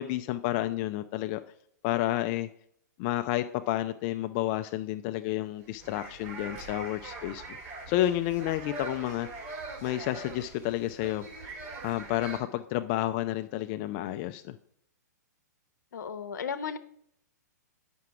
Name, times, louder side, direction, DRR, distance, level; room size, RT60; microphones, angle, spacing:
voice 1, 0.0-1.4 1.8-2.5 3.0-7.6 7.9-9.6 9.8-14.5, left 14 dB, 35° left, 9 dB, 0.4 m, -31 dB
sound 1, 5.6-12.4, right 3 dB, 45° right, 2.8 m, -42 dB
voice 2, 15.9-16.8, left 6 dB, 80° left, 8 dB, 0.8 m, -34 dB
8.3 x 6.0 x 4.6 m, 0.70 s
hypercardioid pair, 130°, 10 cm